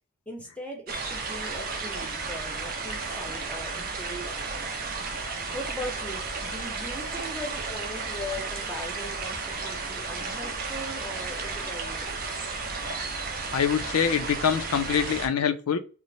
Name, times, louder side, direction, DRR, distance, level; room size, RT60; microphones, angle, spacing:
voice 1, 0.3-4.6 5.5-12.4, left 1 dB, 5° left, 0.7 m, -40 dB
sound 1, 0.9-15.3, right 4 dB, 40° right, 0.5 m, -33 dB
voice 2, 13.5-15.8, left 7 dB, 85° left, 0.4 m, -25 dB
2.9 x 2.1 x 2.6 m
head